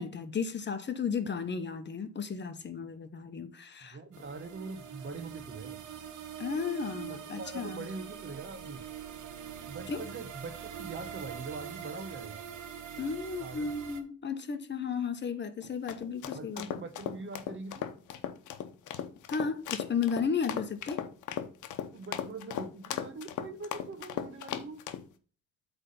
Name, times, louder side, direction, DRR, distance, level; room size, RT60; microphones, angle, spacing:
voice 1, 0.0-4.0 6.4-7.8 9.9-10.1 13.0-16.7 19.3-21.0, left 6 dB, 35° left, 0.9 m, -34 dB
voice 2, 3.8-5.8 7.1-8.9 9.7-12.4 13.4-13.7 16.3-17.9 21.9-24.8, right 3 dB, 40° right, 1.1 m, -43 dB
sound 1, 4.1-14.0, right 9 dB, 85° right, 1.1 m, -44 dB
sound 2, 15.6-25.0, left 10 dB, 75° left, 0.8 m, -37 dB
8.1 x 3.5 x 5.5 m
cardioid pair, 90°, 30 cm